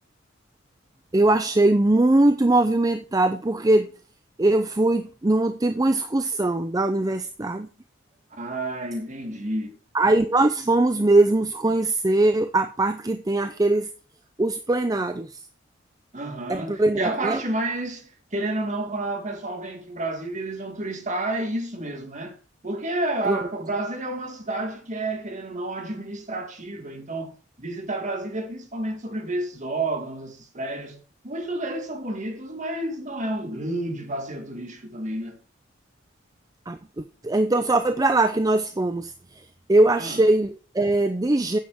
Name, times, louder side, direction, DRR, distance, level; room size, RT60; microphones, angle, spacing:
voice 1, 1.1-3.9 4.4-7.7 9.9-13.9 14.4-15.4 16.5-17.4 23.3-23.4 36.7-39.1 39.7-41.6, right 2 dB, 20° right, 0.5 m, -21 dB
voice 2, 8.3-9.8 16.1-22.4 22.6-35.4 40.0-40.2, right 2 dB, 40° right, 1.9 m, -30 dB
9.4 x 7.5 x 4.6 m
head